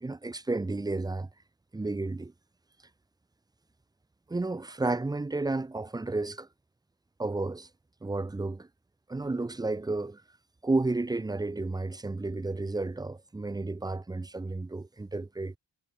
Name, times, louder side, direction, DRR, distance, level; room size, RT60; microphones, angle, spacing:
voice 1, 0.0-1.3 1.7-2.3 4.3-6.5 7.2-7.7 8.0-8.7 9.1-10.2 10.6-15.5, right 2 dB, 10° right, 0.3 m, -32 dB
wide cardioid pair, 130°, 43 cm